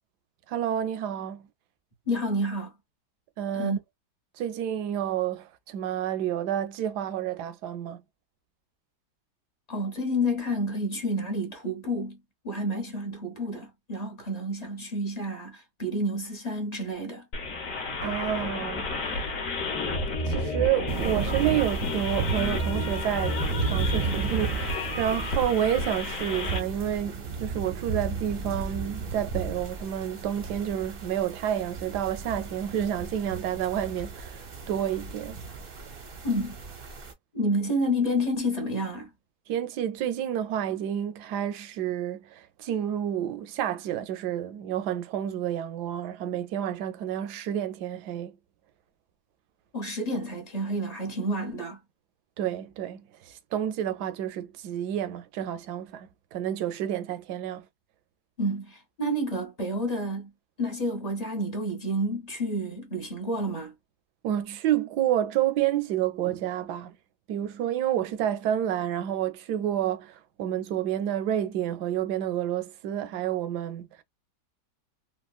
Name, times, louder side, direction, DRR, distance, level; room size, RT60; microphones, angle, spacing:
voice 1, 0.5-1.5 3.4-3.7 4.4-8.0 18.0-19.2 20.3-35.4 39.5-48.3 52.4-57.7 64.2-66.9 67.3-74.0, right 10 dB, 75° right, 1.1 m, -29 dB
voice 2, 2.1-2.7 3.5-3.8 9.7-12.2 12.4-17.2 36.2-36.5 37.3-39.1 49.7-51.8 58.4-60.3 60.6-63.7, equal, 35° left, 0.7 m, -29 dB
sound 1, 17.3-26.6, left 2 dB, 55° left, 1.2 m, -31 dB
sound 2, 20.9-37.1, right 5 dB, 50° right, 0.7 m, -34 dB
3.5 x 2.1 x 2.3 m
omnidirectional pair, 1.9 m